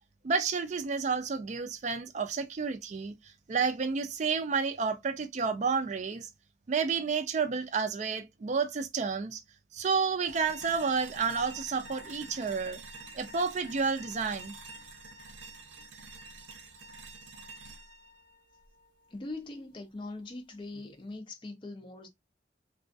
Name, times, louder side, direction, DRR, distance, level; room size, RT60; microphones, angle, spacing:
voice 1, 0.2-3.1 3.5-6.3 6.7-9.4 9.7-12.8 13.1-14.5, right 5 dB, 35° right, 0.3 m, -30 dB
sound 1, 10.3-19.3, right 2 dB, 75° right, 0.6 m, -48 dB
voice 2, 19.1-22.1, left 2 dB, 25° left, 0.4 m, -41 dB
2.4 x 2.2 x 2.4 m
head